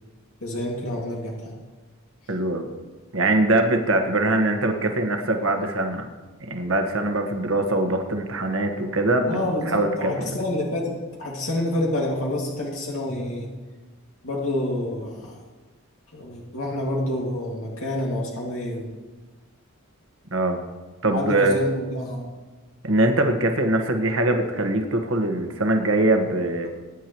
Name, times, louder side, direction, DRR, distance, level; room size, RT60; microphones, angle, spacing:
voice 1, 0.4-1.5 9.2-13.5 14.2-15.4 16.1-18.9 21.1-22.3, left 1 dB, 80° left, -3 dB, 2.3 m, -28 dB
voice 2, 2.3-2.7 3.1-6.1 6.4-9.4 9.7-10.1 20.3-20.6 21.0-21.6 22.8-26.7, right 2 dB, 70° right, 5 dB, 1.4 m, -22 dB
20.0 x 10.0 x 3.1 m, 1.3 s
head